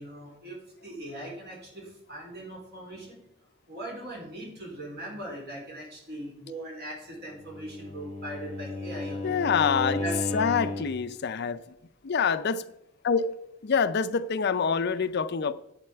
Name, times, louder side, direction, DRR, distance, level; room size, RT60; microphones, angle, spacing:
voice 1, 0.0-3.2 3.7-9.3 10.0-10.4, right 1 dB, 50° right, 4.0 m, -40 dB
Bowed string instrument, 7.4-11.0, left 2 dB, 30° left, 0.9 m, -34 dB
voice 2, 9.2-10.0 10.3-11.6 12.0-12.6 13.0-15.5, left 6 dB, 50° left, 0.5 m, -26 dB
11.0 x 8.1 x 4.6 m
head